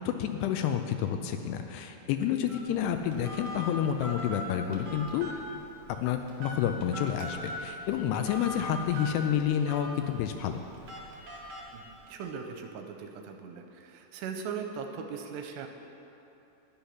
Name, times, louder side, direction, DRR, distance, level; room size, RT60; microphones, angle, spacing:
voice 1, 0.1-5.3 6.0-10.6, left 9 dB, 80° left, 6 dB, 2.5 m, -29 dB
Telephone, 2.5-12.3, left 1 dB, 50° right, 1.8 m, -41 dB
voice 2, 11.7-15.7, right 6 dB, 80° right, 5 dB, 2.7 m, -39 dB
11.0 x 10.5 x 5.8 m, 2.9 s
omnidirectional pair, 5.1 m